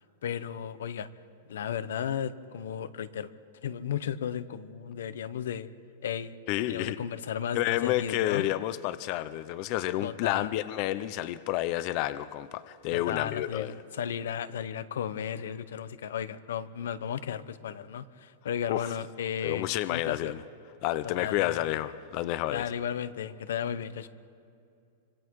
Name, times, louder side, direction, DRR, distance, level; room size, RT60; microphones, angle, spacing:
voice 1, 0.2-1.1 1.5-3.3 3.6-5.7 6.0-6.3 6.7-8.5 10.0-10.5 12.9-20.3 21.2-21.6 22.5-24.1, left 8 dB, 85° left, 14 dB, 0.9 m, -34 dB
voice 2, 6.5-7.0 7.5-13.8 18.7-18.9 19.4-20.4 20.8-22.7, left 15 dB, 40° left, 14 dB, 0.6 m, -30 dB
28.0 x 25.5 x 4.8 m, 2.5 s
supercardioid pair, 160°, 0 cm